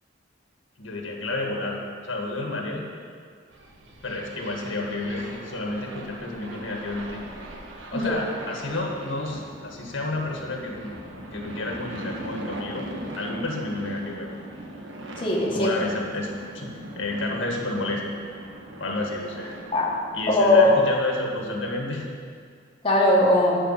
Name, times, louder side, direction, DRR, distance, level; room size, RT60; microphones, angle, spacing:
voice 1, 0.8-2.9 4.0-7.2 7.9-10.9 11.3-12.9 13.2-14.6 15.5-16.7 16.9-18.0 18.8-19.5 20.1-22.1, left 2 dB, 80° left, 0 dB, 1.7 m, -30 dB
sound 1, 3.5-21.7, right 1 dB, 80° right, 1.3 m, -40 dB
voice 2, 15.2-15.7 19.7-19.9 20.3-20.8 22.8-23.6, left 1 dB, 25° left, -3 dB, 1.4 m, -19 dB
11.5 x 4.9 x 8.2 m, 2.1 s
head